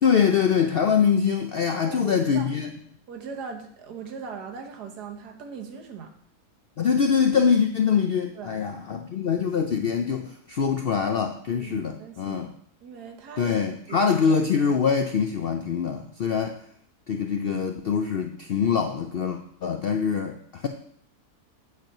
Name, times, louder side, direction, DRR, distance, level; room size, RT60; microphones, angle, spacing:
voice 1, 0.0-2.7 6.8-12.5 13.4-16.6 17.1-20.7, left 6 dB, 70° left, 5 dB, 0.5 m, -24 dB
voice 2, 1.8-2.5 3.1-6.1 8.3-8.6 11.6-12.4 12.8-13.6 13.9-14.1, right 5 dB, 90° right, 4 dB, 1.7 m, -39 dB
8.0 x 4.5 x 6.5 m, 0.66 s
omnidirectional pair, 1.7 m